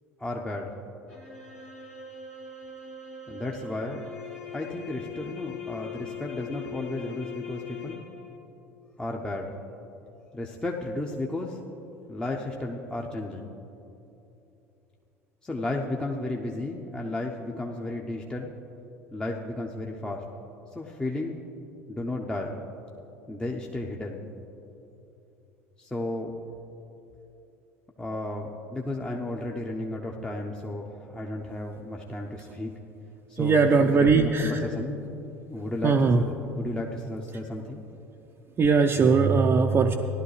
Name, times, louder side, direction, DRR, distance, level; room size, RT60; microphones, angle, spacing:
voice 1, 0.2-0.7 3.3-4.0 4.5-8.0 9.0-9.5 10.3-11.6 12.1-13.5 15.4-18.5 19.1-20.2 20.7-21.4 21.9-22.6 23.3-24.2 25.8-26.3 28.0-32.7 33.3-35.0 35.5-37.8, left 2 dB, 10° left, 0 dB, 0.8 m, -33 dB
sound 1, 1.1-8.4, left 7 dB, 80° left, 1.9 m, -41 dB
voice 2, 33.4-34.6 35.8-36.2 38.6-39.9, right 4 dB, 30° right, 1 dB, 0.6 m, -20 dB
16.0 x 11.5 x 3.3 m, 2.9 s
figure-of-eight pair, 70°, 8 cm